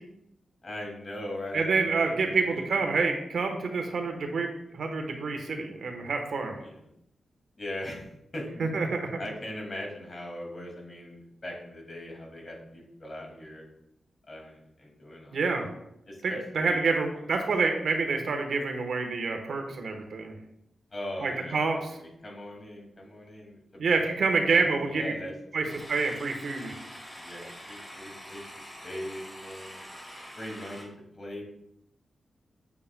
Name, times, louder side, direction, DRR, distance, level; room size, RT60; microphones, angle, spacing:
voice 1, 0.6-2.6 6.5-6.9 7.6-8.7 9.2-13.7 14.3-15.7 16.1-17.0 20.9-21.6 21.9-24.1 24.5-25.3 25.6-25.7 27.2-29.8 30.3-30.9 31.2-31.4, left 1 dB, 40° left, 0 dB, 2.2 m, -40 dB
voice 2, 1.5-4.5 4.7-6.6 8.6-9.1 15.3-15.7 16.2-20.3 21.2-21.8 23.8-25.1 25.5-26.7, right 4 dB, 75° right, 4 dB, 1.1 m, -27 dB
sound 1, 25.7-30.8, equal, 10° left, 1.7 m, -45 dB
8.4 x 7.0 x 2.2 m, 0.80 s
wide cardioid pair, 105°, 0 cm